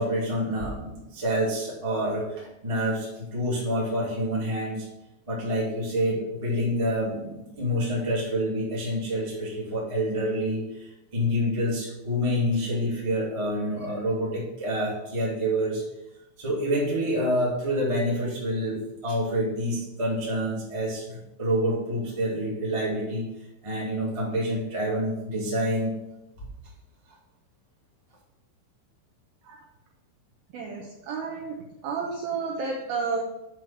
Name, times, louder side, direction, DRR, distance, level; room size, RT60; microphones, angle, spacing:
voice 1, 0.0-4.9 5.3-15.8 16.4-23.3 23.6-26.0 26.4-26.5, equal, 40° right, -5 dB, 0.4 m, -27 dB
voice 2, 30.5-31.6 31.8-33.2, right 5 dB, 85° right, -1 dB, 2.1 m, -31 dB
7.6 x 4.7 x 6.1 m, 0.92 s
omnidirectional pair, 5.6 m